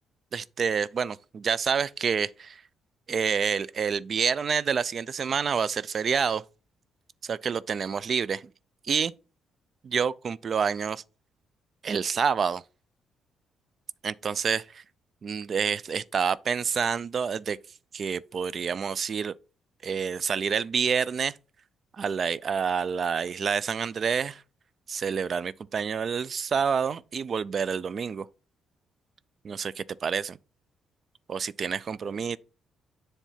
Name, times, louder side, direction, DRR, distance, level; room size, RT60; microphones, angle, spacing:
voice 1, 0.3-2.6 3.1-6.4 7.2-8.5 8.8-9.1 9.8-11.0 11.8-12.6 14.0-14.8 15.2-17.6 17.9-19.4 19.8-21.3 22.0-24.4 24.9-28.3 29.4-30.4 31.3-32.4, right 6 dB, 50° right, 0.4 m, -28 dB
7.3 x 3.3 x 5.6 m
cardioid pair, 90°, 0 cm